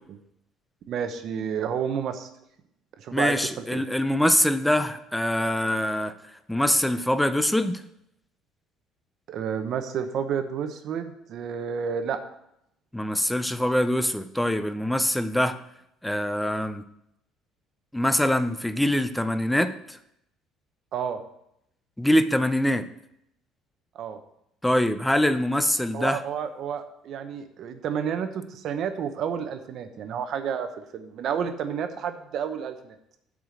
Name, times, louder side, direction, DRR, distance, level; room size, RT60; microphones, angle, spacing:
voice 1, 0.9-2.3 3.0-3.4 3.7-3.8 9.3-12.2 20.9-21.2 23.9-24.2 25.3-25.4 25.9-33.0, right 7 dB, 45° right, 8 dB, 0.8 m, -30 dB
voice 2, 3.1-6.1 6.5-7.8 12.9-15.6 16.0-16.8 17.9-20.0 22.0-22.8 24.6-26.2, left 1 dB, 5° left, 11 dB, 0.4 m, -24 dB
7.6 x 4.9 x 7.2 m, 0.77 s
cardioid pair, 170°, 0 cm